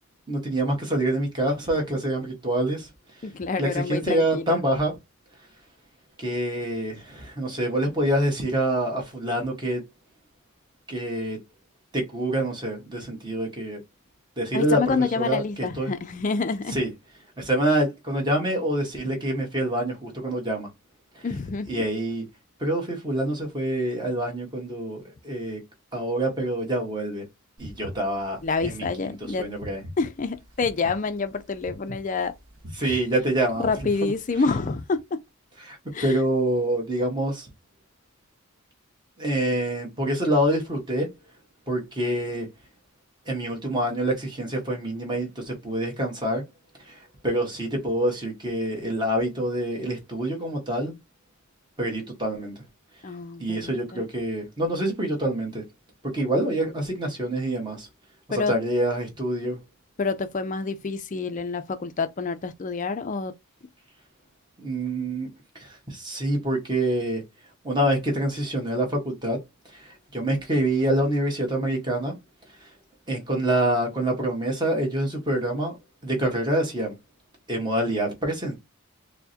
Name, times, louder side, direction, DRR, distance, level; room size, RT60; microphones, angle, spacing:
voice 1, 0.3-2.9 3.6-4.9 6.2-9.8 10.9-11.4 11.9-13.8 14.4-15.9 16.7-16.9 17.4-20.7 21.7-22.2 22.6-25.6 25.9-27.2 27.6-29.8 32.8-33.7 34.0-34.1 35.6-37.5 39.2-41.1 41.7-42.5 43.3-46.4 46.8-47.0 47.2-51.0 51.8-52.5 53.4-55.6 56.0-57.9 58.3-59.6 64.6-67.2 67.6-69.4 69.7-72.1 72.6-72.7 73.1-75.7 76.0-77.0 77.5-78.6, right 1 dB, 20° right, 1.2 m, -26 dB
voice 2, 3.2-4.6 14.5-16.8 21.2-21.8 28.4-29.5 30.0-32.3 32.8-33.0 33.6-35.2 35.9-36.2 53.0-54.0 58.3-58.5 60.0-63.3, left 4 dB, 35° left, 0.4 m, -28 dB
sound 1, 27.6-34.3, left 1 dB, 60° right, 1.0 m, -42 dB
4.5 x 2.1 x 2.7 m
head